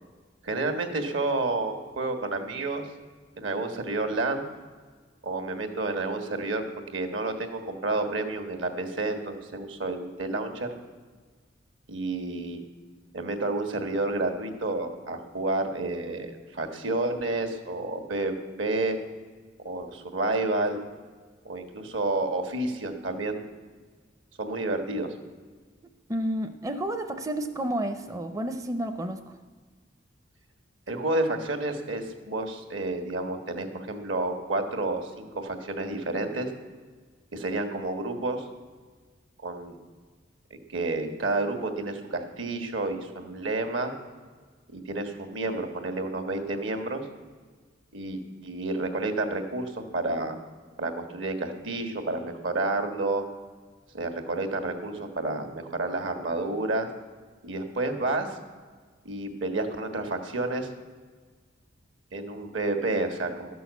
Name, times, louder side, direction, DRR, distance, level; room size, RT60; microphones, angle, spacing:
voice 1, 0.4-2.9 3.4-4.5 5.2-6.6 6.9-10.7 11.9-12.6 13.1-19.0 19.6-20.8 21.4-23.4 24.4-25.1 30.9-36.5 37.3-38.5 39.4-39.8 40.5-43.9 44.7-47.0 47.9-50.4 50.8-53.2 53.9-56.9 57.4-58.4 59.0-60.7 62.1-63.5, right 2 dB, 75° right, 5 dB, 1.5 m, -30 dB
voice 2, 26.1-29.4, right 1 dB, 15° right, 6 dB, 0.5 m, -31 dB
12.5 x 6.2 x 8.1 m, 1.5 s
head